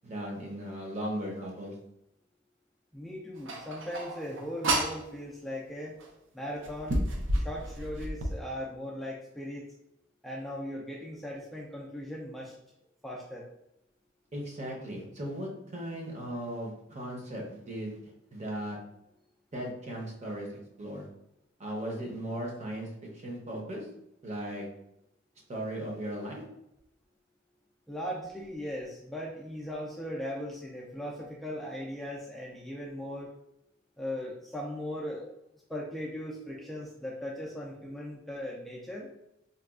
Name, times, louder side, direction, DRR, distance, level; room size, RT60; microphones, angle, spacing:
voice 1, 0.0-1.7 14.3-18.0 18.3-18.8 19.5-20.5 20.8-21.1 21.6-22.9 23.1-23.9 24.2-24.7 25.5-26.4, right 1 dB, 35° right, -1 dB, 0.7 m, -37 dB
voice 2, 2.9-5.9 6.3-7.0 7.4-9.7 10.2-12.5 13.0-13.4 27.9-33.3 34.0-35.2 35.7-39.1, equal, ahead, -5 dB, 0.3 m, -38 dB
sound 1, 3.5-5.0 6.0-6.1 6.6-8.4, right 1 dB, 80° right, 0.5 m, -30 dB
4.0 x 2.2 x 2.3 m, 0.83 s
head